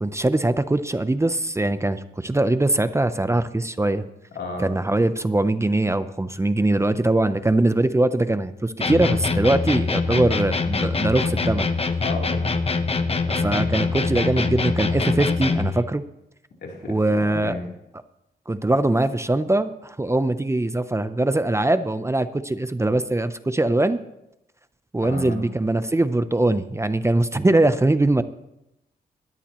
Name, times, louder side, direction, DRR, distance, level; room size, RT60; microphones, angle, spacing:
voice 1, 0.0-4.0 4.6-11.7 13.3-16.0 16.9-17.6 18.5-24.0 24.9-28.2, right 2 dB, 15° right, 12 dB, 0.7 m, -22 dB
voice 2, 4.3-4.7 12.0-12.6 16.6-17.7 25.0-25.4, left 3 dB, 80° left, -1 dB, 3.5 m, -33 dB
sound 1, 8.8-15.8, left 3 dB, 35° left, 1.0 m, -24 dB
20.5 x 13.0 x 3.1 m, 0.87 s
cardioid pair, 75°, 17 cm